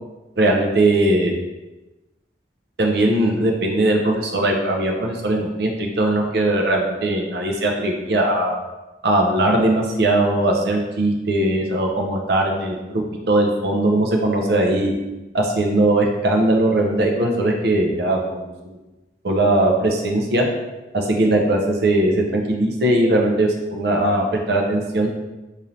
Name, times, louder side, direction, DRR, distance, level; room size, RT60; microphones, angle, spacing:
voice 1, 0.4-1.4 2.8-8.6 9.0-13.0 13.3-14.9 15.3-18.8 19.2-20.4 20.9-25.1, right 1 dB, 60° right, 1 dB, 0.6 m, -19 dB
3.2 x 2.7 x 3.9 m, 1.1 s
head